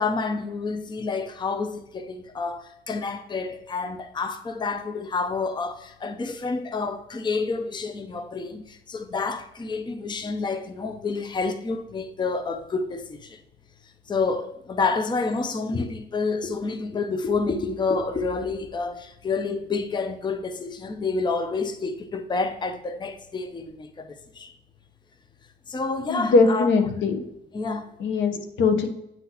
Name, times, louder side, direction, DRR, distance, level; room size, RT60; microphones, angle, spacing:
voice 1, 0.0-13.4 14.1-24.5 25.7-26.7 27.5-27.9, left 4 dB, 25° left, 0.6 m, -29 dB
voice 2, 26.1-27.2 28.0-28.9, left 4 dB, 75° left, 0.8 m, -21 dB
9.0 x 3.7 x 2.8 m
cardioid pair, 90°, 20 cm